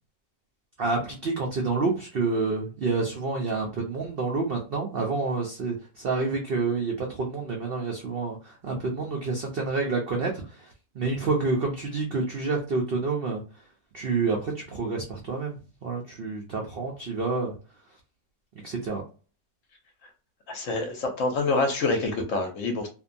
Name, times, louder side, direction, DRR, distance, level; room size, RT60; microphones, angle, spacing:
voice 1, 0.8-10.3 10.6-10.7 11.0-13.4 13.9-15.6 15.8-17.5 18.6-19.0, right 3 dB, 85° right, 0 dB, 0.5 m, -28 dB
voice 2, 20.5-22.9, left 3 dB, 65° left, 4 dB, 0.9 m, -26 dB
2.6 x 2.2 x 2.5 m, 0.35 s
omnidirectional pair, 1.7 m